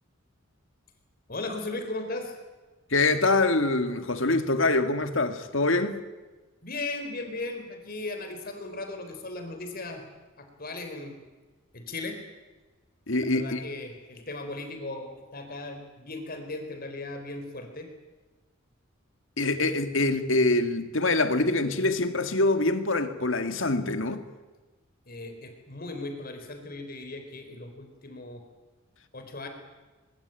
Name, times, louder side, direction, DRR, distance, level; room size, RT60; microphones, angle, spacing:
voice 1, 1.3-2.4 6.6-10.0 10.4-11.2 11.7-12.2 13.3-17.9 25.1-28.4 29.1-29.5, left 2 dB, 45° left, 6 dB, 4.2 m, -37 dB
voice 2, 2.9-6.0 13.1-13.6 19.4-24.2, left 2 dB, 65° left, 9 dB, 2.1 m, -25 dB
23.0 x 22.5 x 9.2 m, 1.2 s
head